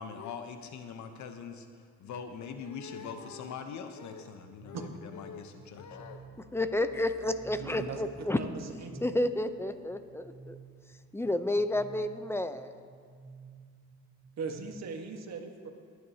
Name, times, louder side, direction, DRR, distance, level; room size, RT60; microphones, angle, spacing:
voice 1, 0.0-6.2, left 6 dB, 70° left, 7 dB, 0.9 m, -42 dB
sound 1, 4.6-14.7, right 4 dB, 10° right, 3.0 m, -53 dB
voice 2, 6.5-8.4 9.0-10.6 11.1-12.7, left 1 dB, 10° left, 10 dB, 0.6 m, -30 dB
voice 3, 7.6-8.0 8.3-9.3 14.4-15.7, right 5 dB, 60° right, 3 dB, 1.5 m, -39 dB
21.0 x 9.4 x 2.8 m, 2.1 s
cardioid pair, 90°, 30 cm